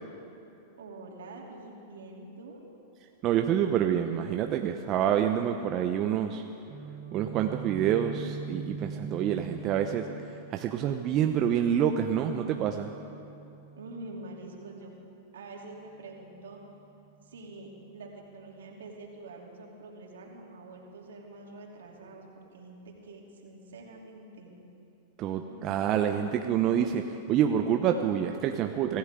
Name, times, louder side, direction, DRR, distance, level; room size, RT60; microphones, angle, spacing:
voice 1, 0.8-2.6 13.7-14.9 15.3-16.6 17.2-24.6 25.5-25.6, right 2 dB, 80° right, -1 dB, 3.1 m, -46 dB
voice 2, 3.2-6.4 7.1-10.1 10.5-12.9 25.2-29.0, right 9 dB, 40° right, 5 dB, 0.8 m, -27 dB
Guitar, 6.7-14.5, right 5 dB, 60° right, 3.3 m, -43 dB
25.0 x 14.5 x 3.8 m, 2.7 s
hypercardioid pair, 110°, 0 cm